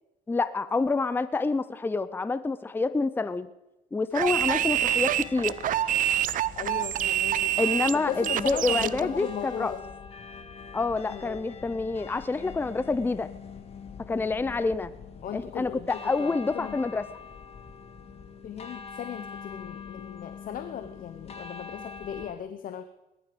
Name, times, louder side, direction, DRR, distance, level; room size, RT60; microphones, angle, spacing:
voice 1, 0.3-3.5 3.9-5.6 7.6-9.7 10.7-13.3 14.0-14.9 15.3-17.1, left 3 dB, 10° left, 15 dB, 0.6 m, -27 dB
sound 1, 4.1-9.0, right 12 dB, 55° right, 0.6 m, -26 dB
sound 2, 4.2-22.3, left 5 dB, 35° left, 2.0 m, -44 dB
voice 2, 6.6-7.5 8.1-9.8 11.1-11.4 15.2-16.9 18.4-22.8, left 9 dB, 55° left, 10 dB, 1.0 m, -37 dB
19.0 x 12.0 x 5.2 m, 0.98 s
cardioid pair, 110°, 17 cm